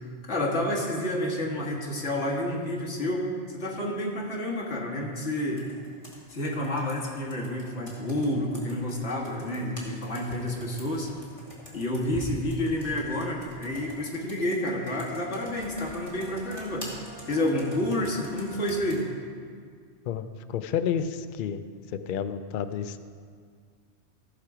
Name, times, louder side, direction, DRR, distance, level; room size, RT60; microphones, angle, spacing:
voice 1, 0.0-5.6 6.3-11.1 11.7-16.9 17.3-19.0, left 1 dB, 75° left, -1 dB, 1.9 m, -29 dB
Computer keyboard, 5.6-19.1, left 1 dB, 25° left, 2.1 m, -46 dB
Bowed string instrument, 15.0-19.2, right 2 dB, 35° right, 2.1 m, -48 dB
voice 2, 20.1-21.6 21.9-23.0, left 8 dB, 55° left, 10 dB, 0.6 m, -30 dB
15.5 x 6.7 x 4.8 m, 2.1 s
omnidirectional pair, 1.2 m